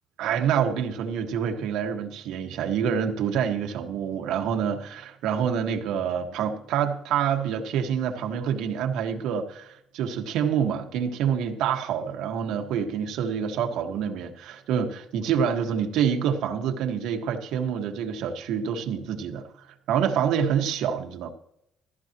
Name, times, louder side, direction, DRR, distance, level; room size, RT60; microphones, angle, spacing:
voice 1, 0.2-21.3, right 8 dB, 90° right, 4 dB, 1.6 m, -27 dB
15.0 x 13.5 x 3.0 m, 0.76 s
cardioid pair, 145°, 0 cm